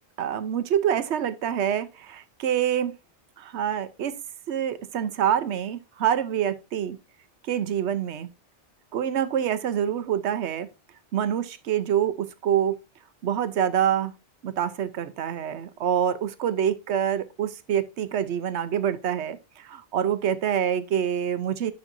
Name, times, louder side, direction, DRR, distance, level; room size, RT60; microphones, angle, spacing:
voice 1, 0.2-2.9 3.4-4.1 4.5-7.0 7.5-8.3 8.9-10.7 11.1-12.8 13.2-14.1 14.4-21.7, right 9 dB, 75° right, 1.0 m, -26 dB
9.8 x 6.4 x 2.6 m
omnidirectional pair, 1.2 m